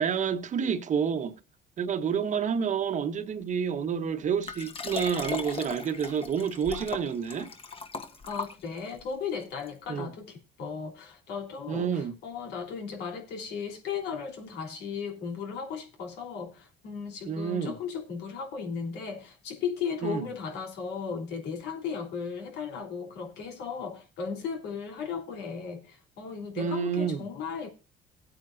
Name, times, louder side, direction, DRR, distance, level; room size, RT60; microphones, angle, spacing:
voice 1, 0.0-1.4 1.8-7.5 9.9-10.1 11.7-12.2 17.3-17.7 20.0-20.3 26.6-27.2, right 7 dB, 45° right, 1.3 m, -29 dB
Liquid, 4.4-9.0 9.7-9.8, left 4 dB, 35° left, 1.5 m, -38 dB
voice 2, 8.3-27.7, left 6 dB, 80° left, 3.3 m, -36 dB
18.0 x 8.9 x 2.6 m
cardioid pair, 110°, 17 cm